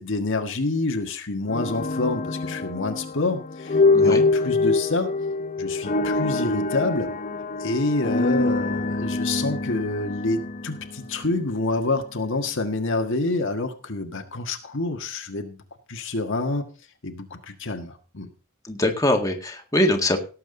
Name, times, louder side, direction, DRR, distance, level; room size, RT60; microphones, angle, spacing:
voice 1, 0.0-5.1 5.6-7.1 7.6-15.6 15.9-16.7 17.0-18.3, left 2 dB, 60° left, 5 dB, 1.7 m, -27 dB
sound 1, 1.5-11.6, left 3 dB, 35° left, 0.7 m, -25 dB
voice 2, 18.6-20.2, left 1 dB, 15° left, 3 dB, 1.9 m, -22 dB
18.0 x 7.8 x 3.9 m, 0.36 s
head